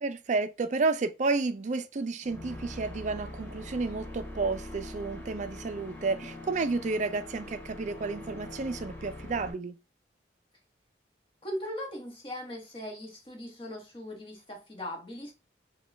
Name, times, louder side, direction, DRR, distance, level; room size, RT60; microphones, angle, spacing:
voice 1, 0.0-9.8, right 3 dB, 40° right, 0.4 m, -31 dB
sound 1, 2.2-9.5, left 1 dB, 10° left, 0.9 m, -43 dB
voice 2, 11.4-15.3, left 1 dB, 30° left, 1.2 m, -39 dB
5.1 x 2.3 x 3.3 m
head